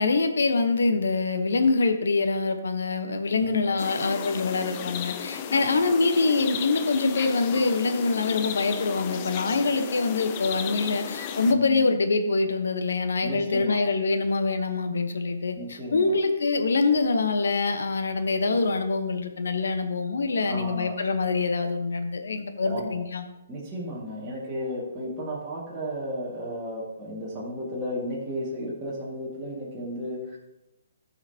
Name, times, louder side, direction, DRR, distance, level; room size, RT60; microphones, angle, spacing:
voice 1, 0.0-23.2, left 3 dB, 75° left, 7 dB, 1.0 m, -25 dB
voice 2, 3.3-3.7 5.5-5.7 7.6-7.8 11.4-11.9 13.2-13.8 15.6-16.3 20.4-21.0 22.6-23.0 23.5-30.4, equal, 15° right, -8 dB, 2.0 m, -34 dB
sound 1, 3.8-11.5, left 8 dB, 35° left, 0.5 m, -35 dB
13.0 x 5.7 x 2.8 m, 0.93 s
hypercardioid pair, 150°, 0 cm